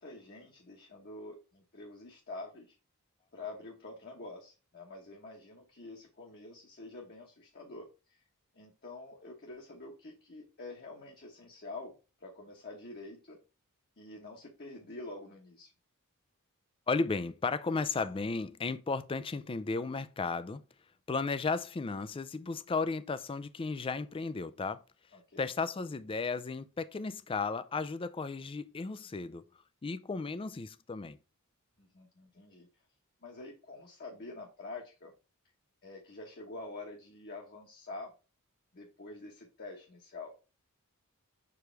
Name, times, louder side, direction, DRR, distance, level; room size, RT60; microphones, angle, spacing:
voice 1, 0.0-2.8 3.3-8.2 8.5-11.9 12.2-13.4 14.0-15.7 25.1-25.5 31.8-32.7 33.2-35.1 35.8-38.1 38.7-40.3, left 2 dB, 50° left, 1.2 m, -47 dB
voice 2, 16.9-20.6 21.1-24.8 25.4-29.5 29.8-31.2, left 4 dB, 25° left, 0.4 m, -34 dB
6.2 x 4.8 x 3.3 m
head